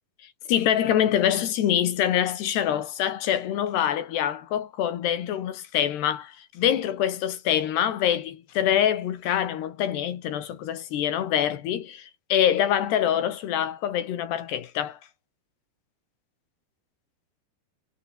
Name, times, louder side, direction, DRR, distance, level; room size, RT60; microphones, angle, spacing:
voice 1, 0.5-15.0, left 10 dB, 75° left, 4.1 m, -25 dB
omnidirectional pair, 4.9 m